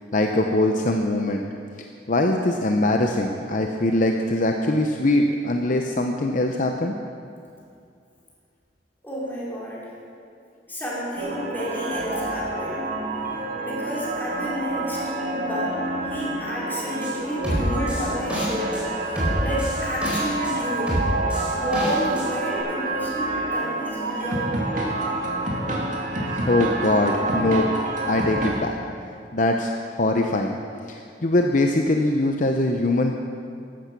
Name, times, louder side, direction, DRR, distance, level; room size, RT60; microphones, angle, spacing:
voice 1, 0.1-1.4 1.8-6.9 26.3-27.7 28.1-28.8 29.3-30.6 30.9-33.2, left 2 dB, 45° left, 3 dB, 0.8 m, -22 dB
voice 2, 9.0-9.9 10.7-12.9 13.6-15.0 15.3-20.9 21.5-24.5, equal, 10° left, -7 dB, 4.5 m, -30 dB
sound 1, 11.2-28.5, right 2 dB, 45° right, 2.5 m, -28 dB
sound 2, 17.0-17.1 17.4-18.8 19.2-20.5 20.9-22.3 22.6-22.7, equal, 5° right, 4.3 m, -26 dB
15.0 x 12.5 x 6.0 m, 2.4 s
head